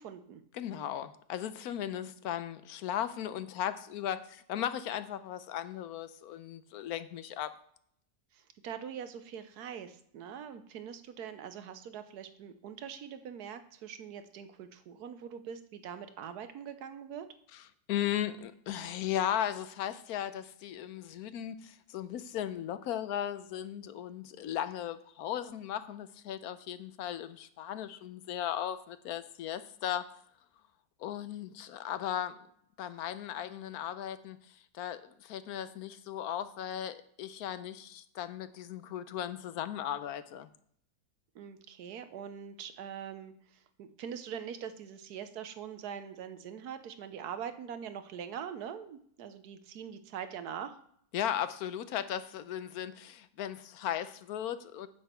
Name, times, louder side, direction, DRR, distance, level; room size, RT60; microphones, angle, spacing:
voice 1, 0.0-0.4 8.3-17.3 41.3-50.8, right 8 dB, 80° right, 10 dB, 1.3 m, -43 dB
voice 2, 0.5-7.5 17.9-30.1 31.0-32.5 32.8-34.4 34.7-40.5 51.1-54.9, left 10 dB, 75° left, 13 dB, 1.1 m, -36 dB
9.3 x 7.9 x 4.4 m, 0.67 s
omnidirectional pair, 1.6 m